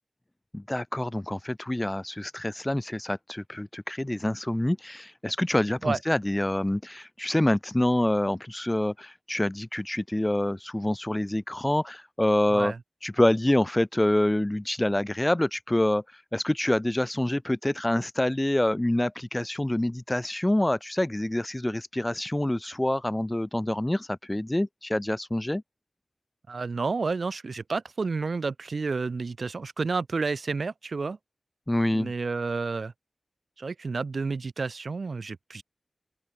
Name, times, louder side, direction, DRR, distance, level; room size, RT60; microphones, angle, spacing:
voice 1, 0.5-12.7 13.0-25.6 31.7-32.1, left 1 dB, 20° left, 0.9 m, -26 dB
voice 2, 26.5-31.2 31.9-32.9 33.6-35.6, right 4 dB, 75° right, 0.6 m, -30 dB
open air
wide cardioid pair, 55°, 0 cm